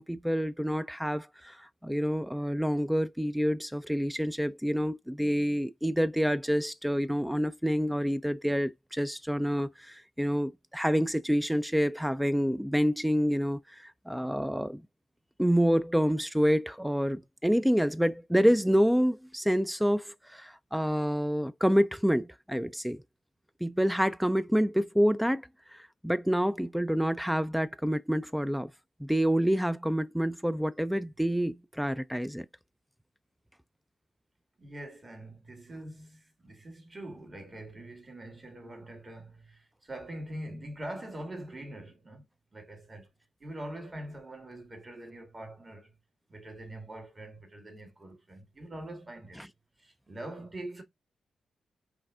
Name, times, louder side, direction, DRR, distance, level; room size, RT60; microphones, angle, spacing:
voice 1, 0.0-14.8 15.4-23.0 23.6-28.7 29.0-32.5, equal, 5° right, 0.4 m, -28 dB
voice 2, 34.6-42.2 42.5-43.1 43.4-45.9 46.3-49.5 49.8-50.8, right 1 dB, 35° right, 1.9 m, -43 dB
4.7 x 2.6 x 3.5 m
supercardioid pair, 40°, 0 cm